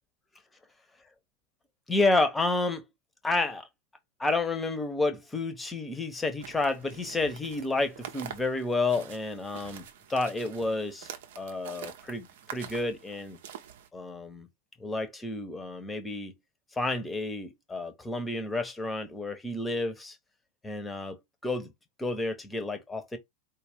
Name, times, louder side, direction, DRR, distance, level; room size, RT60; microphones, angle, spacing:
voice 1, 1.9-2.9 3.2-3.7 4.2-9.8 10.1-11.1 11.4-13.4 13.9-14.5 14.8-16.3 16.7-20.2 20.6-21.2 21.4-21.7 22.0-23.2, left 2 dB, 10° left, 0.9 m, -30 dB
sound 1, 6.4-13.9, right 9 dB, 55° right, 0.8 m, -46 dB
4.5 x 2.6 x 3.4 m
figure-of-eight pair, 90°, 0 cm